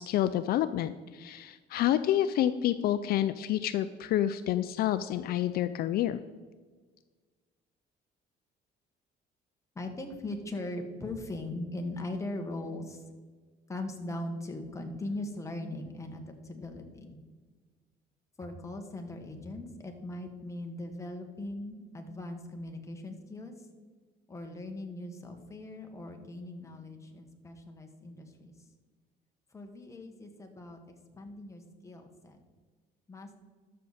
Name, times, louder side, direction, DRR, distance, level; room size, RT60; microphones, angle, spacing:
voice 1, 0.0-6.2, left 12 dB, 65° left, 12 dB, 0.4 m, -28 dB
voice 2, 9.7-13.0 13.7-17.2 18.4-23.7 24.3-28.7 29.5-32.4 33.1-33.4, left 2 dB, 20° left, 3 dB, 1.5 m, -40 dB
12.5 x 6.6 x 4.2 m, 1.4 s
cardioid pair, 110°, 17 cm